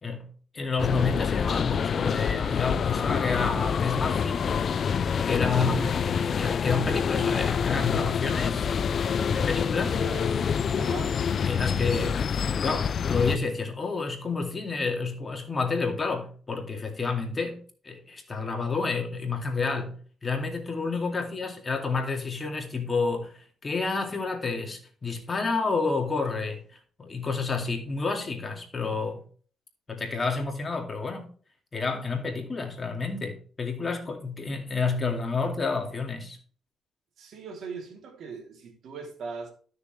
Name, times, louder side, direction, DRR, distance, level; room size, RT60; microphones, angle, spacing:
voice 1, 0.0-4.5 5.2-8.7 9.3-10.0 10.8-10.9 11.5-12.2 12.5-26.6 27.0-29.2 29.9-31.3 31.7-36.4, left 4 dB, 30° left, 2.4 m, -30 dB
sound 1, 0.8-13.4, left 7 dB, 50° left, 0.4 m, -26 dB
voice 2, 5.5-5.9 10.0-10.4 10.8-11.2 21.1-21.2 37.2-39.5, right 5 dB, 70° right, 2.9 m, -40 dB
12.5 x 6.7 x 3.2 m
cardioid pair, 90°, 0 cm